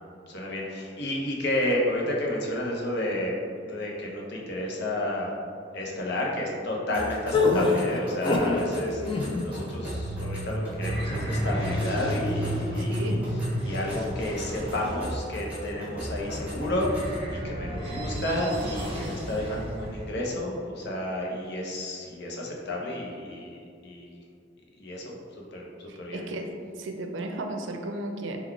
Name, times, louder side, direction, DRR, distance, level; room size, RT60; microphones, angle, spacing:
voice 1, 0.3-3.3 3.6-5.4 5.7-13.2 13.6-24.1 24.8-25.1 25.5-25.7 26.0-26.2, left 1 dB, 65° left, -2 dB, 0.7 m, -31 dB
sound 1, 6.9-17.3, equal, 10° right, 1.2 m, -39 dB
sound 2, 7.3-8.6 9.0-9.5, left 3 dB, 25° left, 0.4 m, -24 dB
sound 3, 9.6-20.0, equal, 30° right, 0.8 m, -32 dB
voice 2, 12.8-13.2 25.9-26.5 26.8-28.4, right 2 dB, 80° right, 4 dB, 0.4 m, -34 dB
3.9 x 2.3 x 4.4 m, 2.4 s
head